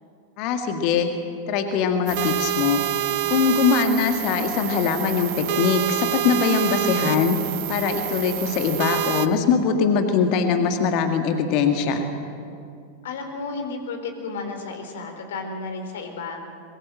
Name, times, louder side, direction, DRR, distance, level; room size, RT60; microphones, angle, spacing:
voice 1, 0.4-1.1 1.5-2.8 3.3-7.4 7.7-12.0, left 6 dB, 45° left, 6 dB, 1.9 m, -22 dB
sound 1, 2.1-9.3, right 13 dB, 45° right, 1.1 m, -27 dB
voice 2, 13.0-16.4, left 4 dB, 60° left, 5 dB, 4.0 m, -32 dB
23.0 x 22.5 x 7.7 m, 2.5 s
figure-of-eight pair, 90°, 0 cm